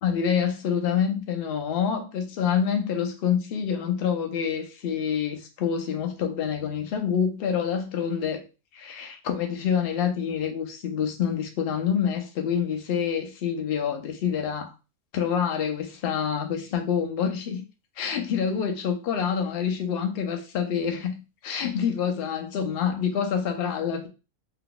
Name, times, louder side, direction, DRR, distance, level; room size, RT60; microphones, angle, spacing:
voice 1, 0.0-8.4 8.7-14.7 15.1-17.6 18.0-21.2 21.4-24.1, left 7 dB, 55° left, 0.7 m, -27 dB
2.8 x 2.2 x 3.8 m
omnidirectional pair, 1.6 m